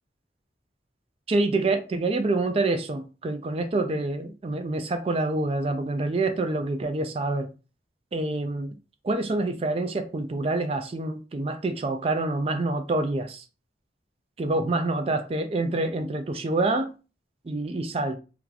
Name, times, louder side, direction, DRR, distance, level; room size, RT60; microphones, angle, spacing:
voice 1, 1.3-7.5 8.1-8.8 9.0-13.4 14.4-16.9 17.5-18.2, right 2 dB, 30° right, 0.3 m, -27 dB
3.0 x 2.3 x 3.8 m
head